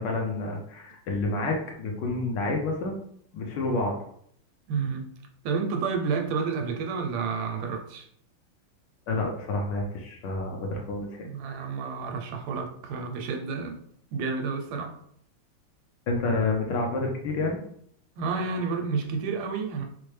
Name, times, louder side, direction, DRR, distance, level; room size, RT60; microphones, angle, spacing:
voice 1, 0.0-3.0 3.3-4.0 9.1-11.3 16.1-17.6, left 2 dB, 70° left, 1 dB, 1.2 m, -29 dB
voice 2, 4.7-5.1 5.4-8.0 11.2-13.8 14.1-15.0 18.2-19.9, right 5 dB, 85° right, 3 dB, 1.5 m, -30 dB
4.3 x 2.1 x 3.2 m, 0.67 s
omnidirectional pair, 2.3 m